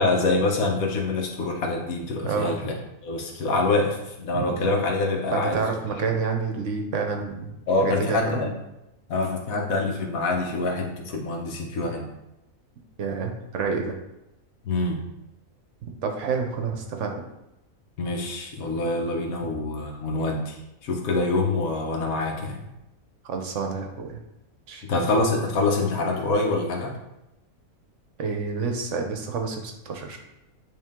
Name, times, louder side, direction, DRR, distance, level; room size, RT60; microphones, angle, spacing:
voice 1, 0.0-2.7 3.0-5.6 6.1-6.2 7.7-8.5 9.1-12.1 14.6-15.0 18.0-20.6 20.8-22.6 24.8-27.0, left 2 dB, 90° left, 2 dB, 1.4 m, -25 dB
voice 2, 5.3-7.5 7.8-8.5 13.0-13.9 15.8-17.1 23.2-24.2 24.7-24.8 28.2-30.2, right 5 dB, 65° right, 3 dB, 1.1 m, -28 dB
8.7 x 3.1 x 3.6 m, 0.90 s
omnidirectional pair, 1.4 m